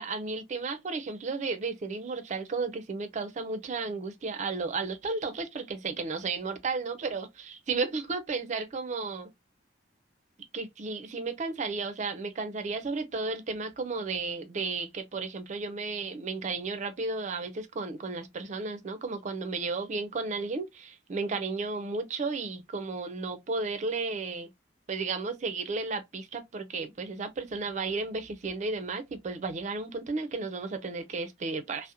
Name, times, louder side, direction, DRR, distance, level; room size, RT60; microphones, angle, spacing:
voice 1, 0.0-9.3 10.5-24.5 24.9-31.9, right 4 dB, 40° right, 0.4 m, -33 dB
2.8 x 2.0 x 2.3 m
head